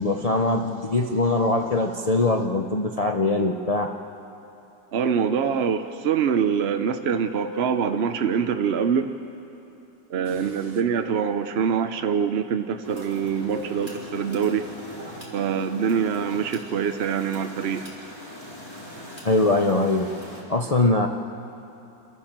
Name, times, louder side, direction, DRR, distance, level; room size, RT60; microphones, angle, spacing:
voice 1, 0.0-3.9 19.2-20.1 20.5-21.1, left 2 dB, 70° left, 2 dB, 0.3 m, -22 dB
voice 2, 4.9-9.2 10.1-14.7 15.3-17.8, right 7 dB, 60° right, 7 dB, 0.6 m, -24 dB
sound 1, 12.8-20.4, equal, 15° left, 4.3 m, -40 dB
28.0 x 13.5 x 7.4 m, 2.9 s
omnidirectional pair, 2.0 m